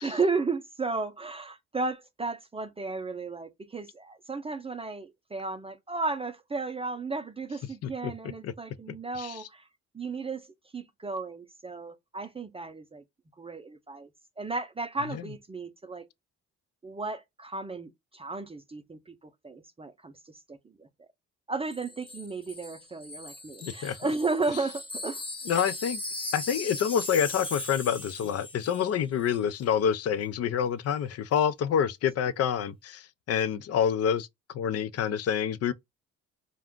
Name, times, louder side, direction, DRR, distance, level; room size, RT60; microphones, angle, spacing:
voice 1, 0.0-9.6 9.9-10.5 10.7-13.0 13.4-14.1 14.4-16.1 16.8-19.1 19.4-20.1 20.8-20.9 21.5-25.2, right 3 dB, 20° right, 0.6 m, -34 dB
voice 2, 8.9-9.4 15.1-15.2 23.6-24.1 25.5-26.0 26.3-35.7, left 8 dB, 55° left, 0.5 m, -28 dB
Wind chime, 21.7-28.9 29.2-29.4, left 2 dB, 20° left, 0.7 m, -39 dB
2.4 x 2.2 x 3.6 m
cardioid pair, 90°, 30 cm